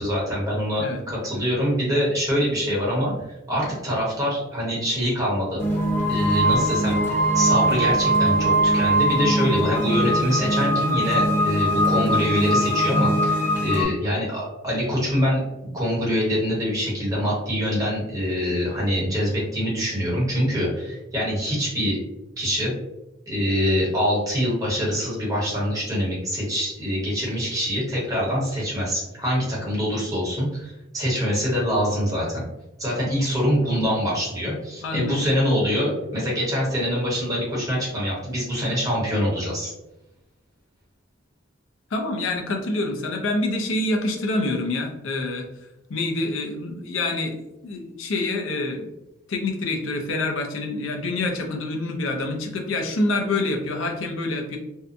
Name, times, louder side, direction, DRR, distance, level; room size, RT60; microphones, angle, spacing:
voice 1, 0.0-5.6 6.0-7.0 7.3-15.4 15.7-22.0 22.4-22.7 23.3-32.4 32.8-39.7, equal, 15° right, -6 dB, 1.1 m, -24 dB
sound 1, 5.6-13.9, right 1 dB, 10° left, 0.8 m, -21 dB
voice 2, 34.8-35.2 41.9-45.4 45.9-48.9 49.3-54.6, left 2 dB, 75° left, 3 dB, 0.5 m, -26 dB
2.7 x 2.2 x 2.5 m, 0.91 s
head